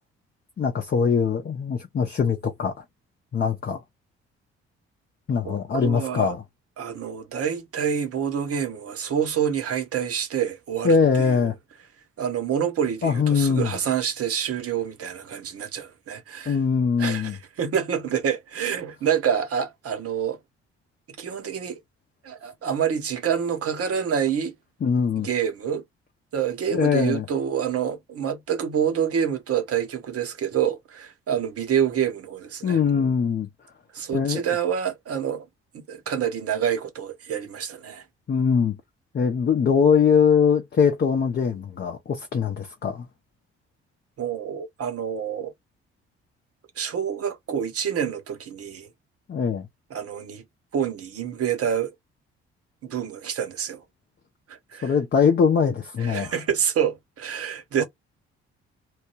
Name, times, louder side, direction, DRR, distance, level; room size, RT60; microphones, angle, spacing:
voice 1, 0.6-2.7 3.3-3.8 5.3-6.4 10.8-11.5 13.0-13.8 16.5-17.4 24.8-25.3 26.7-27.3 32.6-33.5 34.1-34.4 38.3-38.8 39.1-43.1 49.3-49.7 54.8-56.3, left 6 dB, 30° left, 0.7 m, -22 dB
voice 2, 5.4-6.3 6.8-11.0 11.4-11.5 12.2-16.6 17.0-20.4 21.2-21.8 22.2-24.5 25.2-25.8 26.3-32.8 33.9-35.4 35.7-38.0 44.2-45.5 46.8-48.9 49.9-50.4 50.7-51.9 52.8-53.8 54.5-54.9 56.0-57.8, right 8 dB, 45° right, 0.9 m, -27 dB
3.0 x 2.2 x 3.0 m
figure-of-eight pair, 45°, 33 cm